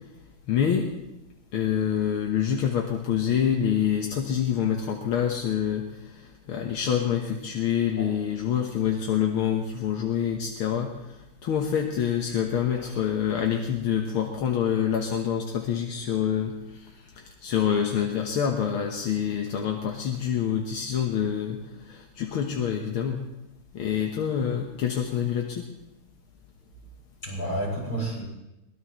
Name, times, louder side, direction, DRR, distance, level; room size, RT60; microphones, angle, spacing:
voice 1, 0.5-0.9 1.5-23.2 23.7-25.7, left 8 dB, 80° left, 2 dB, 2.1 m, -27 dB
voice 2, 12.7-13.0 24.4-24.5 27.2-28.2, right 1 dB, 45° left, -4 dB, 7.8 m, -31 dB
23.0 x 19.5 x 3.2 m, 0.98 s
omnidirectional pair, 2.3 m